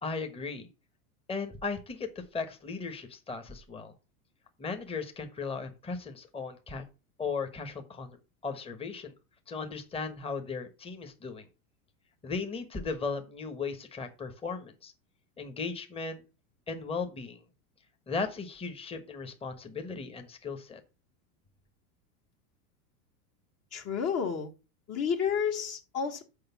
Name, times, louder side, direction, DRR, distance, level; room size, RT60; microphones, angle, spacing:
voice 1, 0.0-0.7 1.3-3.9 4.6-6.8 7.2-8.2 8.4-9.1 9.5-11.4 12.2-14.9 15.4-16.2 16.7-17.4 18.1-20.8, left 4 dB, 15° left, 6 dB, 1.2 m, -36 dB
voice 2, 23.7-24.5 24.9-26.2, left 7 dB, 35° left, 4 dB, 1.3 m, -30 dB
6.7 x 5.2 x 6.9 m, 0.31 s
supercardioid pair, 120°, 44 cm